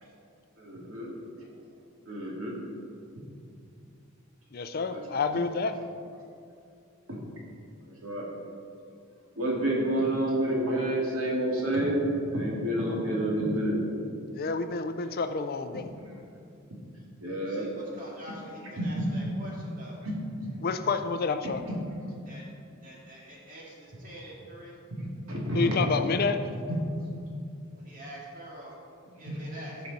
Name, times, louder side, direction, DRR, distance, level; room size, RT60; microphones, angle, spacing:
voice 1, 0.6-1.1 2.1-2.6 4.9-5.0 7.1-7.2 8.0-8.3 9.4-12.0 12.3-13.8 17.2-17.7 18.8-19.0 20.0-20.2 25.0-25.8, right 1 dB, 75° right, -3 dB, 2.3 m, -29 dB
voice 2, 4.5-5.7 14.3-15.9 20.6-21.6 25.5-26.4, left 4 dB, 45° left, 9 dB, 0.4 m, -29 dB
voice 3, 17.4-20.0 22.2-22.4 22.8-24.8 27.7-28.8 29.2-29.8, equal, 40° right, -4 dB, 2.2 m, -46 dB
15.0 x 5.2 x 4.1 m, 2.5 s
head